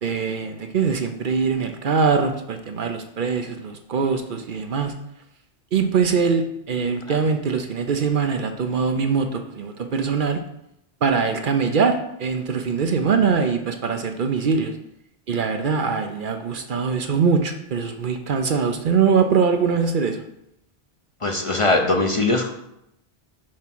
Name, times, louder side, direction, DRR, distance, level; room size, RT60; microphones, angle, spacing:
voice 1, 0.0-4.9 5.7-10.4 11.0-14.7 15.3-20.2, right 5 dB, 55° right, 6 dB, 0.7 m, -22 dB
voice 2, 21.2-22.5, left 2 dB, 35° left, 3 dB, 0.6 m, -21 dB
7.4 x 3.6 x 5.9 m, 0.81 s
omnidirectional pair, 1.1 m